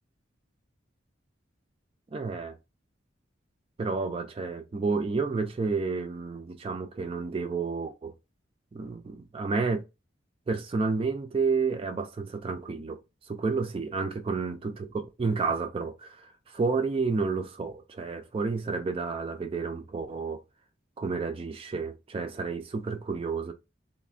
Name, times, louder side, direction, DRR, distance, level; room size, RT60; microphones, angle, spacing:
voice 1, 2.1-2.6 3.8-8.1 8.7-9.8 10.5-13.0 13.3-20.4 21.0-23.5, right 4 dB, 30° right, 0.3 m, -30 dB
3.2 x 2.1 x 2.4 m
head